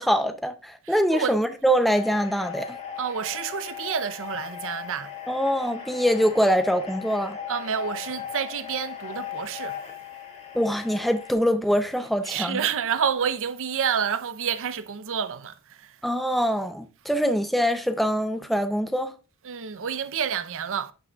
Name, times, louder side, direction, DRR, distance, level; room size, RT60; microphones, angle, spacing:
voice 1, 0.0-2.8 5.3-7.4 10.5-12.7 16.0-19.1, equal, ahead, 0.4 m, -24 dB
voice 2, 0.9-1.4 3.0-5.1 7.5-9.8 12.3-15.9 19.5-20.9, right 7 dB, 60° right, 0.6 m, -29 dB
sound 1, 1.9-11.3, left 9 dB, 30° left, 1.8 m, -38 dB
10.5 x 6.2 x 2.3 m
head